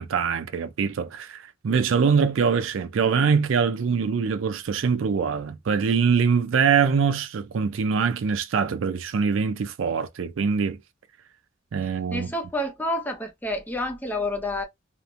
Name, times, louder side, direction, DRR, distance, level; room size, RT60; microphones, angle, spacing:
voice 1, 0.0-10.8 11.7-12.3, right 6 dB, 70° right, 0.4 m, -23 dB
voice 2, 12.1-14.6, left 1 dB, 10° left, 0.5 m, -29 dB
2.9 x 2.0 x 2.4 m
head